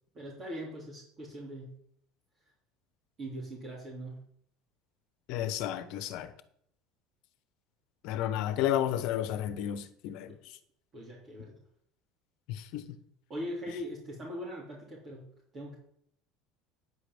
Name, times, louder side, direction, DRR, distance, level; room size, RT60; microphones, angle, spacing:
voice 1, 0.1-1.8 3.2-4.2 10.3-10.4 10.9-11.5 13.3-15.3 15.5-15.8, equal, 40° right, 3.7 m, -41 dB
voice 2, 5.3-6.3 8.0-10.3 12.5-13.0, left 11 dB, 65° left, 1.1 m, -32 dB
9.7 x 5.0 x 8.0 m
hypercardioid pair, 80°, 0 cm